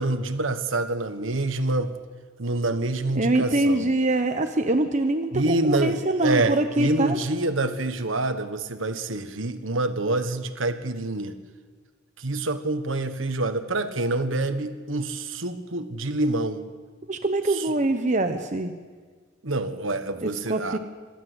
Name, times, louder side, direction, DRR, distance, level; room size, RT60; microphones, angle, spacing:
voice 1, 0.0-1.9 2.4-3.9 5.3-11.4 12.2-16.6 17.5-17.7 19.4-20.8, right 2 dB, 85° right, 8 dB, 1.5 m, -27 dB
voice 2, 3.1-7.2 17.1-18.7 20.2-20.8, right 2 dB, 40° right, 6 dB, 0.9 m, -24 dB
26.0 x 12.5 x 8.2 m, 1.5 s
head